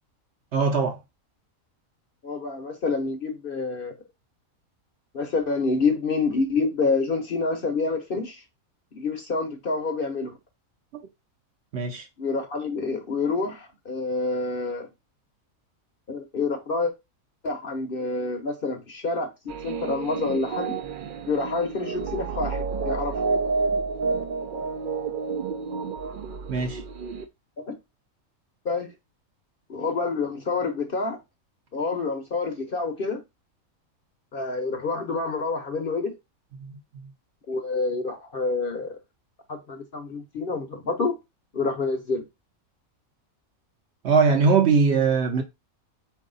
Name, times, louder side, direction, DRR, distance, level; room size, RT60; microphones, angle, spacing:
voice 1, 0.5-1.0 10.9-11.1 11.7-12.1 26.5-26.8 36.6-37.1 44.0-45.4, right 5 dB, 60° right, 0.8 m, -22 dB
voice 2, 2.2-4.0 5.1-8.4 8.9-10.4 12.2-14.9 16.1-16.9 17.4-19.3 19.6-20.8 21.3-23.2 27.7-27.8 28.6-28.9 29.7-31.2 31.7-33.2 34.3-36.1 37.5-39.0 39.5-41.2 41.5-42.2, left 3 dB, 50° left, 0.8 m, -27 dB
sound 1, 19.5-27.3, right 4 dB, 75° right, 0.4 m, -30 dB
4.6 x 2.7 x 3.8 m
omnidirectional pair, 1.4 m